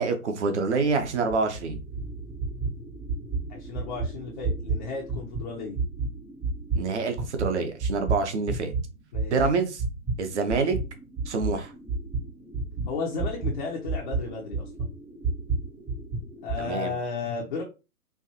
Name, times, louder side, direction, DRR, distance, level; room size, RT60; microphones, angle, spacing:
voice 1, 0.0-1.8 6.7-8.7 9.3-9.8 10.2-10.8 11.3-11.7 16.6-16.9, right 4 dB, 50° right, 7 dB, 1.0 m, -26 dB
sound 1, 1.0-8.8 9.1-16.6, right 3 dB, 5° right, 0.7 m, -32 dB
voice 2, 3.5-5.8 9.1-9.3 12.9-14.7 16.4-17.6, left 4 dB, 30° left, -2 dB, 0.8 m, -33 dB
4.6 x 2.6 x 2.8 m, 0.29 s
figure-of-eight pair, 130°, 45 cm